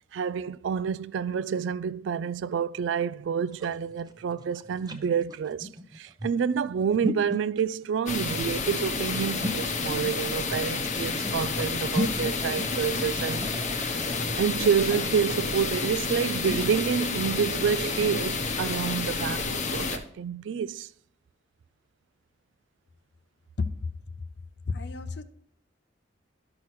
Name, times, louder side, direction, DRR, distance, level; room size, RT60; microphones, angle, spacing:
voice 1, 0.1-5.7 5.9-13.4 13.7-20.9, right 7 dB, 85° right, 0.3 m, -28 dB
sound 1, 3.5-18.2, equal, 25° right, 0.7 m, -37 dB
sound 2, 8.1-20.0, left 4 dB, 40° left, 0.9 m, -30 dB
voice 2, 24.7-25.2, left 4 dB, 65° left, 0.6 m, -30 dB
12.5 x 5.9 x 3.1 m
head